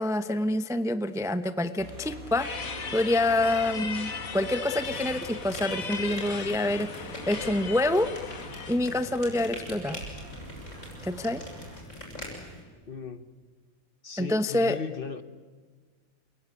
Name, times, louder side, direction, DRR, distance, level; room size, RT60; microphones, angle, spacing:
voice 1, 0.0-8.1 8.7-10.0 11.0-11.4 14.2-14.8, left 1 dB, 5° right, 0.7 m, -27 dB
sound 1, 1.8-11.8, right 1 dB, 85° right, 5.0 m, -45 dB
sound 2, 2.4-8.8, left 5 dB, 75° left, 2.2 m, -37 dB
sound 3, 4.7-12.6, left 1 dB, 60° left, 7.8 m, -43 dB
voice 2, 12.9-13.3 14.0-15.2, left 5 dB, 45° left, 1.3 m, -37 dB
28.0 x 22.0 x 9.8 m
omnidirectional pair, 1.5 m